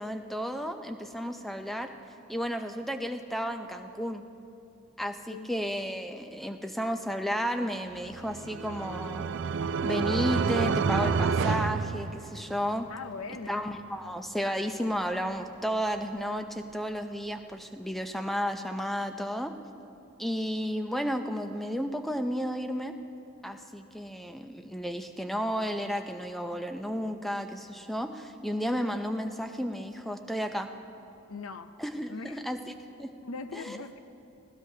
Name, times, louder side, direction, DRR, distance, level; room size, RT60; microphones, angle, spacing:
voice 1, 0.0-1.9 2.3-4.2 5.0-9.3 9.8-12.9 13.5-19.5 20.2-22.9 23.4-30.7 31.8-33.2 33.5-33.8, equal, ahead, 6 dB, 0.5 m, -33 dB
Car passing by, 7.7-18.3, left 1 dB, 50° left, 3.4 m, -57 dB
sound 1, 8.1-12.7, right 5 dB, 55° right, 0.4 m, -29 dB
voice 2, 12.9-13.8 31.3-31.7 32.1-32.4 33.2-34.0, left 4 dB, 70° left, 10 dB, 0.6 m, -40 dB
20.5 x 16.0 x 2.8 m, 2.8 s
head